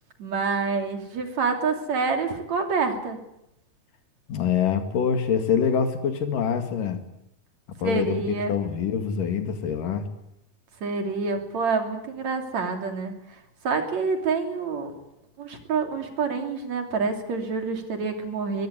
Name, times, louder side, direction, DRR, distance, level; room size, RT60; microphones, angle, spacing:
voice 1, 0.2-3.2 7.8-8.5 10.8-13.1 13.6-14.9 15.4-18.7, right 4 dB, 60° right, 5 dB, 4.2 m, -27 dB
voice 2, 4.3-7.0 7.7-8.2 8.5-10.1, left 7 dB, 85° left, 8 dB, 3.8 m, -25 dB
23.5 x 20.0 x 9.8 m, 0.84 s
omnidirectional pair, 3.7 m